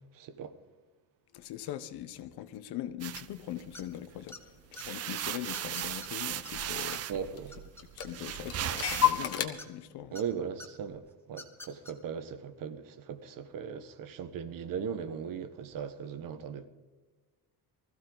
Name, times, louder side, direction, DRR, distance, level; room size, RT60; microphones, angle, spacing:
voice 1, 0.1-0.5 7.1-7.6 10.1-16.7, right 7 dB, 55° right, 1.4 m, -38 dB
voice 2, 1.3-4.5 4.8-7.0 7.9-10.2, left 12 dB, 80° left, 1.1 m, -41 dB
sound 1, 3.0-4.2 4.6-9.3, right 11 dB, 40° right, 0.6 m, -37 dB
sound 2, 3.7-4.0 4.3-4.8 5.5-6.1 6.4-6.5 6.8-6.9 7.2-8.4 9.6-10.2 10.6-10.7 11.3-11.9, left 2 dB, 5° left, 1.3 m, -47 dB
Clock, 4.3-4.4 4.7-6.2 6.5-6.6 6.8-7.5 7.8-9.5, left 10 dB, 40° left, 1.5 m, -32 dB
20.5 x 14.5 x 4.0 m
cardioid pair, 170°, 38 cm